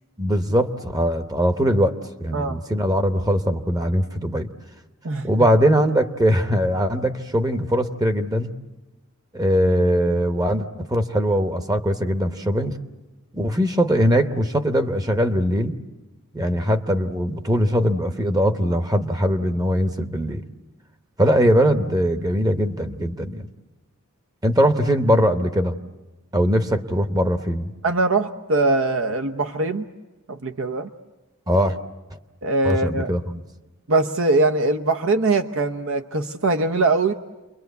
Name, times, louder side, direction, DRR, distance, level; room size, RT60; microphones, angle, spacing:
voice 1, 0.2-1.9 2.2-4.5 5.2-8.5 9.3-12.8 13.3-15.7 16.3-20.4 21.2-23.5 24.4-25.8 26.3-27.7 31.5-31.8 32.6-33.4, equal, 15° right, 8 dB, 1.0 m, -21 dB
voice 2, 27.8-29.8 30.3-30.9 32.4-33.1 33.9-37.1, right 2 dB, 65° right, 5 dB, 0.9 m, -22 dB
29.5 x 22.5 x 8.2 m, 1.1 s
head